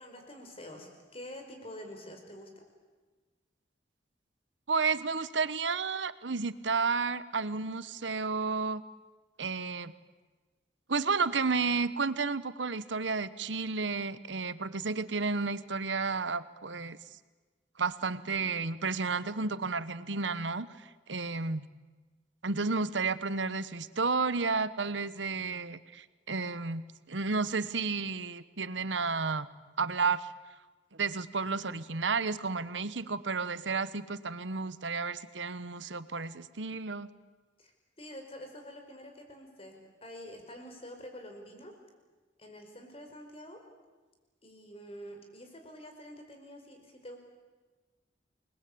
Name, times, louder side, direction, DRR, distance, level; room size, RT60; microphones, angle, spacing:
voice 1, 0.0-2.6 37.6-41.7 42.4-43.6 44.4-47.2, equal, 30° left, 4 dB, 5.0 m, -47 dB
voice 2, 4.7-8.8 9.4-9.9 10.9-17.0 17.8-21.7 22.4-29.5 29.8-30.3 30.9-37.1, right 4 dB, 80° right, 15 dB, 1.1 m, -32 dB
29.0 x 21.0 x 8.6 m, 1.3 s
head